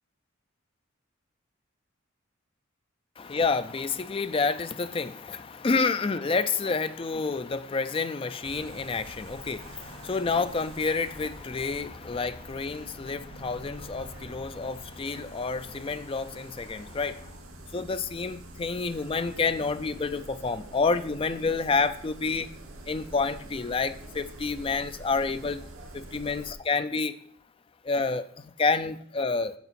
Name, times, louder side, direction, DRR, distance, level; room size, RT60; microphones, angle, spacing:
voice 1, 3.2-17.3 17.7-22.5 22.9-25.6 25.9-27.2 27.8-29.5, left 4 dB, 25° left, 11 dB, 0.4 m, -29 dB
sound 1, 8.4-26.5, right 1 dB, 80° right, 1.1 m, -46 dB
8.3 x 4.1 x 5.7 m, 0.62 s
head